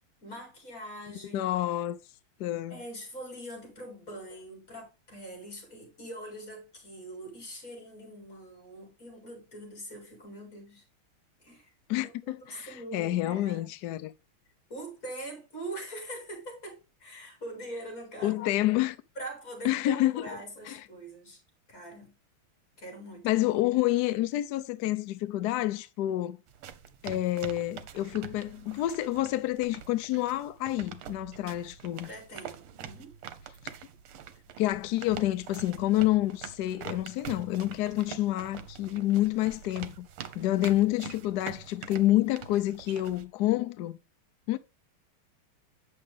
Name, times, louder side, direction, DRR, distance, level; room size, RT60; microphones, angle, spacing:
voice 1, 0.2-1.5 2.7-10.8 11.4-11.7 12.0-13.7 14.7-18.4 19.2-21.4 21.7-22.1 22.8-23.4 32.0-33.1 40.4-40.6, right 1 dB, 40° left, 4.5 m, -43 dB
voice 2, 1.3-2.0 2.4-2.8 11.9-14.1 18.2-19.0 19.6-20.2 20.7-20.8 23.2-26.4 27.0-32.1 33.6-33.7 34.6-40.1 40.3-44.0 44.5-44.6, left 15 dB, 80° left, 0.9 m, -28 dB
sound 1, 26.5-43.2, right 8 dB, 85° right, 1.8 m, -45 dB
8.5 x 6.6 x 3.4 m
omnidirectional pair, 2.3 m